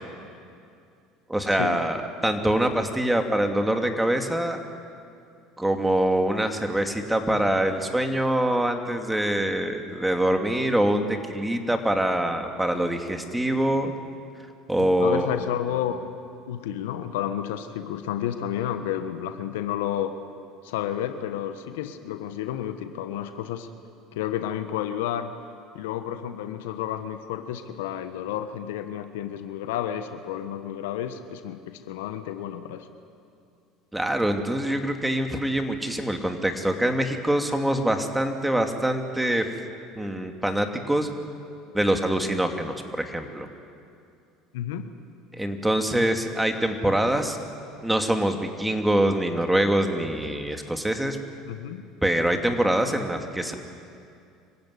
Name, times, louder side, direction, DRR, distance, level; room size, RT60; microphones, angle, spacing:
voice 1, 1.3-4.6 5.6-13.9 14.7-15.3 33.9-39.5 40.0-41.1 41.7-43.5 45.3-47.4 47.8-51.2 52.0-53.5, right 1 dB, 5° right, 5 dB, 2.6 m, -24 dB
voice 2, 14.8-16.1 16.5-20.1 20.6-23.7 24.1-25.3 25.7-32.9 44.5-44.9 51.5-51.9, left 10 dB, 80° left, 9 dB, 1.3 m, -31 dB
25.5 x 16.0 x 9.8 m, 2.4 s
hypercardioid pair, 80°, 0 cm